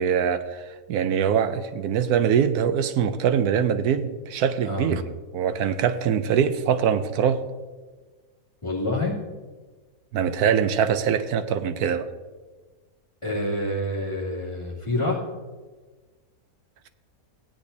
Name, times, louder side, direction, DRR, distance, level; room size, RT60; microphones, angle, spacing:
voice 1, 0.0-5.0 5.3-7.4 10.1-12.1, right 8 dB, 80° right, 11 dB, 1.1 m, -23 dB
voice 2, 4.6-5.0 8.6-9.2 13.2-15.3, left 1 dB, 20° left, -6 dB, 2.8 m, -27 dB
16.5 x 10.0 x 2.7 m, 1.4 s
omnidirectional pair, 1.6 m